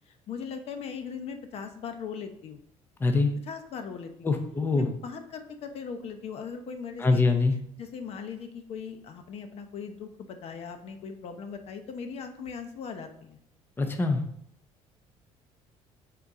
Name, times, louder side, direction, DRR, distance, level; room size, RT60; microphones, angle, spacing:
voice 1, 0.1-2.6 3.5-4.3 4.7-7.2 7.8-13.4, left 6 dB, 55° left, 7 dB, 0.8 m, -39 dB
voice 2, 3.0-3.3 4.2-4.9 7.0-7.6 13.8-14.2, left 3 dB, 15° left, 6 dB, 0.7 m, -24 dB
6.8 x 4.0 x 4.9 m, 0.70 s
cardioid pair, 125°, 12 cm